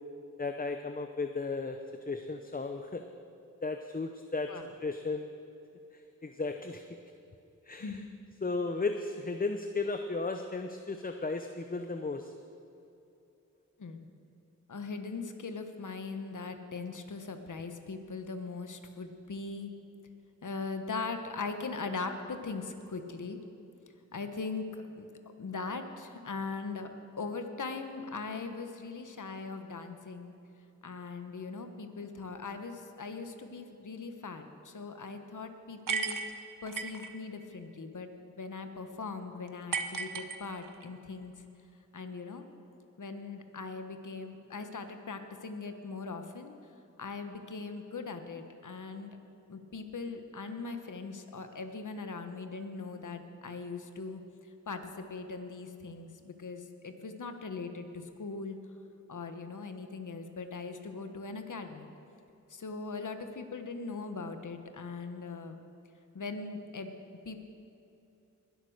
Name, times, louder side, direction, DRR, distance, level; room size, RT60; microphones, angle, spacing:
voice 1, 0.4-1.8 2.1-3.0 3.6-4.5 4.8-5.3 6.2-6.8 7.7-8.0 8.4-12.3, left 3 dB, 25° left, 6 dB, 0.7 m, -34 dB
voice 2, 14.7-19.7 20.4-23.4 24.1-24.7 25.0-25.1 25.4-26.9 27.2-30.3 30.8-36.2 36.6-38.1 38.4-41.3 41.9-42.4 43.0-46.5 47.0-49.2 49.5-54.2 54.7-58.6 59.1-61.9 62.5-65.6 66.1-66.9 67.2-67.4, left 4 dB, 70° left, 7 dB, 1.2 m, -40 dB
sound 1, 35.9-37.1 39.7-40.9, right 5 dB, 85° right, 0.8 m, -34 dB
20.5 x 8.1 x 6.5 m, 2.8 s
wide cardioid pair, 65°, 32 cm